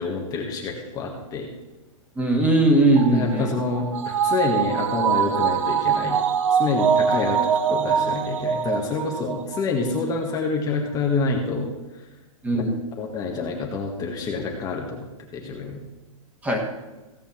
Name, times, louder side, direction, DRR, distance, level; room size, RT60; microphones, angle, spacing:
voice 1, 0.0-1.5 3.1-6.2 6.5-11.7 13.0-15.1 15.3-15.8, left 4 dB, 20° left, 0 dB, 1.6 m, -27 dB
voice 2, 2.2-3.5 12.4-12.7 16.4-16.6, right 2 dB, 10° right, 2 dB, 2.0 m, -19 dB
sound 1, 3.0-9.6 10.0-10.1, right 7 dB, 70° right, 1.1 m, -23 dB
16.5 x 5.6 x 7.3 m, 1.1 s
hypercardioid pair, 150°, 18 cm